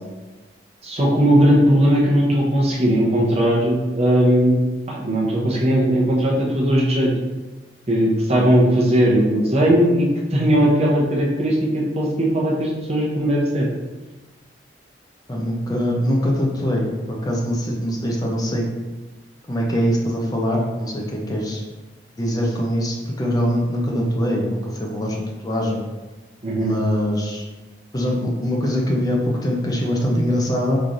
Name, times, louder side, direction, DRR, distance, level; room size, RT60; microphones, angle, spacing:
voice 1, 0.8-4.6 4.9-7.1 7.9-13.7 26.4-26.7, equal, 35° right, -4 dB, 0.7 m, -18 dB
voice 2, 15.3-18.6 19.5-21.6 22.2-25.8 26.6-27.5 27.9-30.8, equal, 20° left, -2 dB, 0.6 m, -23 dB
3.7 x 3.1 x 2.6 m, 1.2 s
head